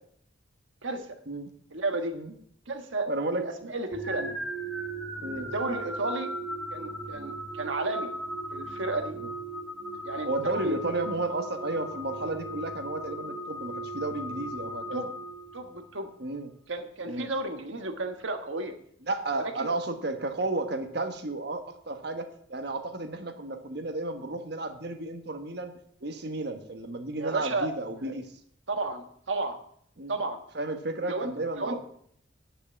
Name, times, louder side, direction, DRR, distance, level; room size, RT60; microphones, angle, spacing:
voice 1, 1.7-2.1 2.7-4.3 5.4-6.3 6.7-8.1 8.5-9.1 10.0-10.3 10.5-10.8 14.9-15.1 15.5-16.1 16.7-18.8 19.3-19.7 27.1-27.7 28.0-28.1 28.7-29.6 30.1-30.4 31.0-31.8, right 2 dB, 75° right, 6 dB, 1.5 m, -32 dB
voice 2, 3.1-3.7 4.2-4.3 5.2-5.5 9.2-9.3 10.2-15.1 16.2-16.5 17.1-17.3 19.1-25.7 26.0-28.2 30.0-30.1 30.5-31.8, right 2 dB, 55° right, 6 dB, 1.3 m, -33 dB
sound 1, 3.9-15.9, right 1 dB, ahead, 1.3 m, -37 dB
9.5 x 5.6 x 8.4 m, 0.66 s
head